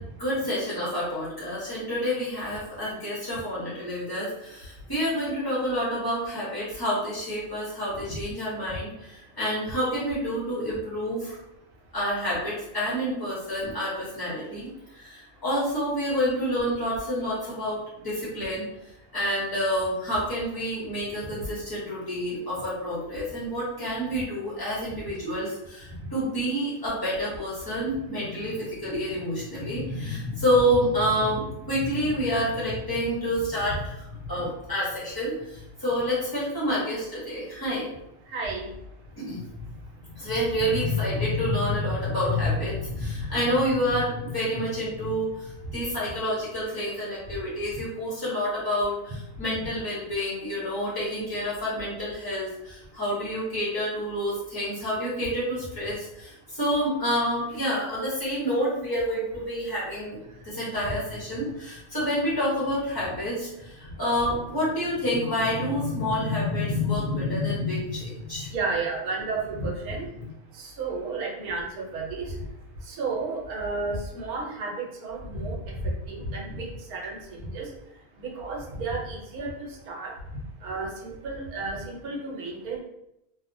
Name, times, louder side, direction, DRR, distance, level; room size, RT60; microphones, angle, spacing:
voice 1, 0.2-11.4 11.9-18.7 19.1-37.9 39.2-39.4 40.2-60.2 60.4-68.5, equal, 30° left, -8 dB, 0.4 m, -28 dB
voice 2, 38.3-38.7 68.5-70.1 70.8-71.7 71.9-72.3 72.9-74.7 75.0-75.8 76.1-77.2 77.5-77.7 78.2-80.1 80.6-82.8, right 3 dB, 80° right, -1 dB, 1.1 m, -32 dB
2.7 x 2.0 x 2.5 m, 0.85 s
omnidirectional pair, 1.6 m